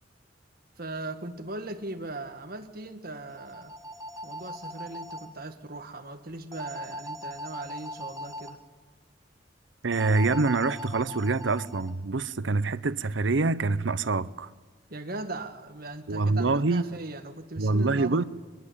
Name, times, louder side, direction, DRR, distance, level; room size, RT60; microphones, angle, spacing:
voice 1, 0.8-3.7 4.2-8.6 14.9-18.2, right 2 dB, 50° right, 1.8 m, -39 dB
sound 1, 3.3-5.3 6.5-8.5 9.9-11.9, equal, 20° right, 1.5 m, -40 dB
voice 2, 9.8-14.5 16.1-16.8 17.6-18.2, right 3 dB, 80° right, 0.8 m, -25 dB
23.0 x 22.0 x 8.7 m
head